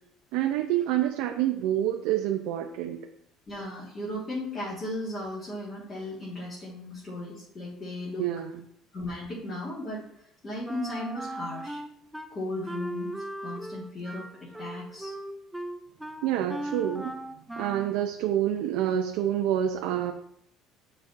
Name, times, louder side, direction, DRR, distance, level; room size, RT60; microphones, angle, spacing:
voice 1, 0.3-3.0 8.2-8.6 16.2-17.2 17.6-20.1, right 11 dB, 80° right, 3 dB, 0.5 m, -27 dB
voice 2, 3.5-8.2 8.9-10.1 10.4-11.8 12.3-15.1, left 1 dB, 20° left, -8 dB, 1.6 m, -36 dB
Wind instrument woodwind instrument, 10.6-12.3 12.7-18.0, right 1 dB, 5° right, 0.3 m, -38 dB
8.9 x 4.2 x 2.5 m, 0.73 s
cardioid pair, 170°, 0 cm